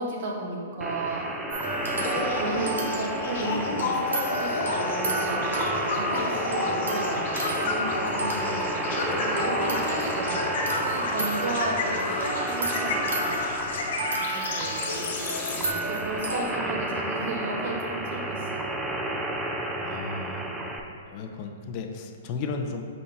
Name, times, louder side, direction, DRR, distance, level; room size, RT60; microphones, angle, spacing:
voice 1, 0.0-1.8 2.1-8.7 9.1-18.7, right 2 dB, 60° right, -1 dB, 1.3 m, -34 dB
sound 1, 0.8-20.8, right 1 dB, 10° right, 0.6 m, -32 dB
sound 2, 1.5-16.4, right 1 dB, 75° right, 1.0 m, -33 dB
voice 2, 1.9-2.3 19.8-20.5 21.1-22.8, left 4 dB, 40° left, 4 dB, 0.6 m, -35 dB
sound 3, 2.0-15.7, left 3 dB, 60° left, 1.0 m, -31 dB
5.6 x 5.3 x 3.3 m, 2.3 s
hypercardioid pair, 115°, 0 cm